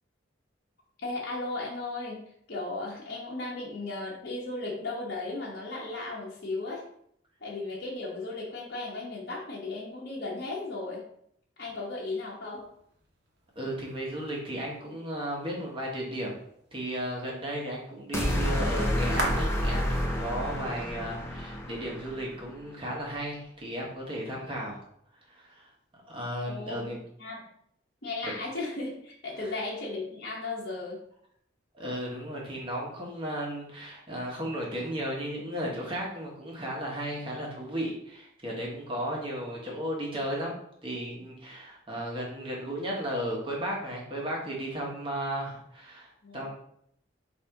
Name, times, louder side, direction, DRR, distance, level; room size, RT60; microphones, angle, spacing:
voice 1, 1.0-6.8 7.4-11.0 11.6-12.6 26.5-26.9 27.2-27.4 28.0-31.0 46.2-46.5, left 2 dB, 55° left, -5 dB, 1.0 m, -36 dB
sound 1, 12.5-22.5, right 2 dB, 60° right, 1.0 m, -44 dB
voice 2, 13.5-16.4 16.7-24.8 25.3-25.7 26.1-27.0 28.2-28.3 29.4-29.5 31.7-40.5 40.8-46.5, right 1 dB, 30° right, -3 dB, 1.2 m, -35 dB
sound 2, 18.1-22.4, left 1 dB, 15° left, 0.7 m, -29 dB
4.1 x 2.7 x 4.6 m, 0.70 s
head